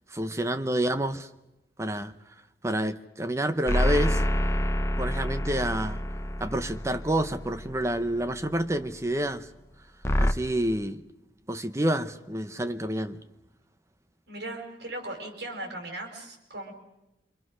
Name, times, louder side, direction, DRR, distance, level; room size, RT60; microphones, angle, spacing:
voice 1, 0.1-1.3 1.8-2.1 2.6-4.2 5.0-6.0 6.4-9.5 10.2-11.0 11.5-13.2, right 1 dB, 15° right, 0.8 m, -28 dB
sound 1, 3.7-8.3 10.0-10.3, equal, 15° left, 0.8 m, -27 dB
voice 2, 14.3-16.7, right 1 dB, 85° right, 5.0 m, -38 dB
27.5 x 24.5 x 6.3 m
head